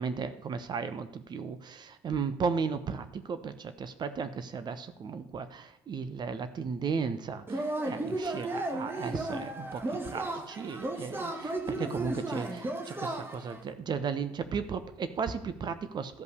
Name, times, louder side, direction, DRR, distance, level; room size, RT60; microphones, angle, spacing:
voice 1, 0.0-16.2, right 5 dB, 45° right, 12 dB, 1.1 m, -35 dB
Yell / Cheering, 7.5-13.6, right 2 dB, 20° right, 1.6 m, -34 dB
13.5 x 5.5 x 6.6 m, 0.82 s
supercardioid pair, 70°, 10 cm